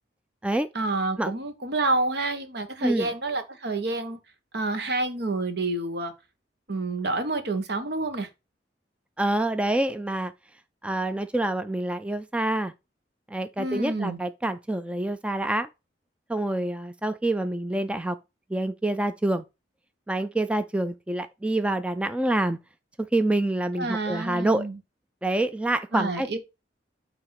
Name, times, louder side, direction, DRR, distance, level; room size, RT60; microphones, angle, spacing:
voice 1, 0.7-4.2 4.5-6.1 6.7-8.3 13.6-14.2 23.8-24.8 25.9-26.4, right 2 dB, 65° right, 1.3 m, -28 dB
voice 2, 9.2-10.3 10.8-12.7 13.3-15.7 16.3-18.2 18.5-19.4 20.1-22.6 23.1-24.7 25.2-26.4, right 1 dB, 5° right, 0.4 m, -26 dB
8.8 x 3.0 x 5.7 m
head